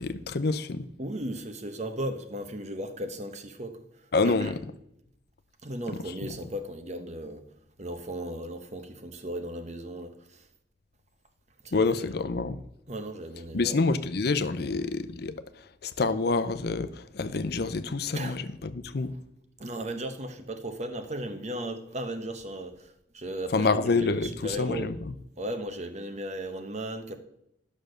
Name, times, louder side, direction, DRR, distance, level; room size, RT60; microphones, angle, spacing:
voice 1, 0.0-0.9 4.1-4.6 6.3-6.4 11.7-12.6 13.5-19.1 23.5-25.1, left 3 dB, 60° left, 0.7 m, -27 dB
voice 2, 1.0-4.5 5.6-7.4 7.8-10.5 11.6-12.0 12.9-13.8 14.6-14.9 18.1-18.4 19.6-23.8 24.2-24.9 25.4-27.2, right 1 dB, 40° right, 1.1 m, -36 dB
11.5 x 6.5 x 6.6 m
head